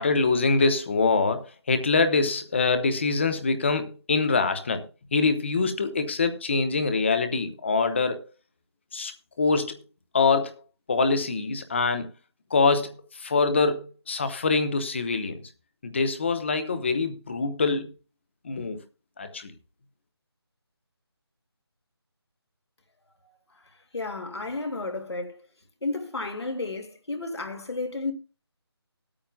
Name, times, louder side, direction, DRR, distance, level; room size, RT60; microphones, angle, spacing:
voice 1, 0.0-4.8 5.1-8.3 8.9-9.1 9.4-9.8 10.1-10.6 10.9-12.1 12.5-15.5 15.8-17.9 18.4-18.8 19.2-19.5, left 4 dB, 25° left, 0.9 m, -24 dB
voice 2, 23.9-25.4 25.8-28.1, left 3 dB, 80° left, 2.4 m, -32 dB
20.0 x 8.7 x 2.3 m
figure-of-eight pair, 170°, 14 cm